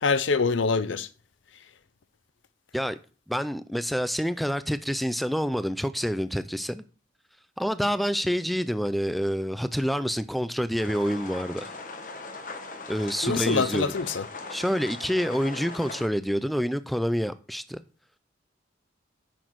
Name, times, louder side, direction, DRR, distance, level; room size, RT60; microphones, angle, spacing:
voice 1, 0.0-1.1 13.2-14.2, left 4 dB, 90° left, 0.6 m, -25 dB
voice 2, 3.3-6.8 7.6-11.7 12.9-13.9 14.5-17.8, equal, ahead, 0.3 m, -27 dB
sound 1, 10.8-16.1, left 3 dB, 45° left, 1.1 m, -40 dB
9.1 x 6.1 x 4.6 m
head